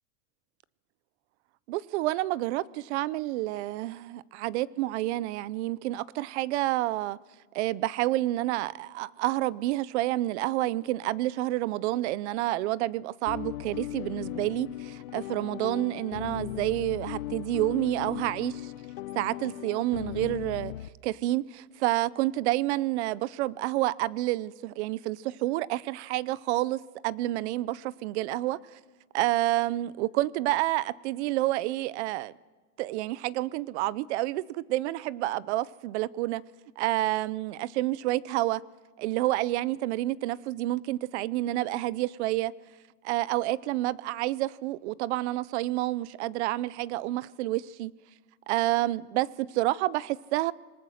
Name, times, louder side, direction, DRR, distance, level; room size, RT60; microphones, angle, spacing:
voice 1, 1.7-7.2 7.5-18.7 19.1-20.7 21.0-28.6 29.1-32.3 32.8-36.4 36.8-38.6 39.0-42.5 43.0-47.9 48.5-50.5, right 16 dB, 50° right, 0.6 m, -29 dB
sound 1, 13.3-20.9, left 15 dB, 75° left, 0.7 m, -38 dB
26.5 x 20.0 x 6.5 m
supercardioid pair, 170°, 43 cm